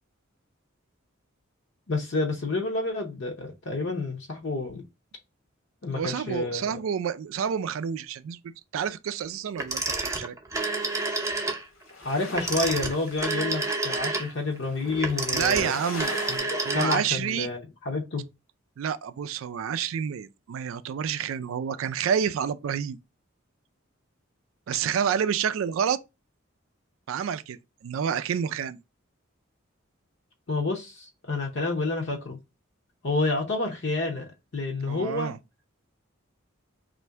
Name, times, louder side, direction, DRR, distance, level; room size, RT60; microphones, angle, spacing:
voice 1, 1.9-4.8 5.8-6.8 12.0-15.7 16.3-18.2 30.5-32.4 33.0-35.3, left 3 dB, 60° left, 0.8 m, -29 dB
voice 2, 5.9-10.4 15.3-16.1 16.6-17.5 18.8-23.0 24.7-26.0 27.1-28.8 34.9-35.4, right 7 dB, 75° right, 0.3 m, -29 dB
Telephone, 9.6-11.6 12.3-17.3, right 3 dB, 15° right, 0.6 m, -29 dB
sound 1, 11.3-16.4, left 3 dB, 90° left, 1.2 m, -42 dB
3.2 x 2.5 x 4.4 m
head